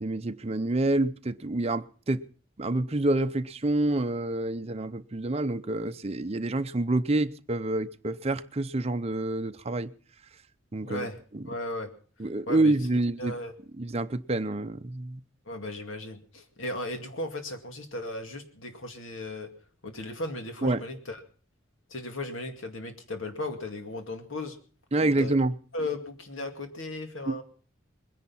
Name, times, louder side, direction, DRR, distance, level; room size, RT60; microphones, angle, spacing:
voice 1, 0.0-2.2 2.6-9.9 10.7-11.1 11.3-11.4 12.2-13.3 13.8-15.2 20.6-20.8 24.9-25.5 27.3-27.4, right 2 dB, 30° right, 0.7 m, -27 dB
voice 2, 10.8-11.2 11.5-11.9 12.5-13.5 15.5-19.5 19.8-21.2 21.9-24.6 25.0-25.3 25.7-27.4, left 1 dB, 70° left, 2.3 m, -36 dB
21.5 x 10.5 x 5.6 m
head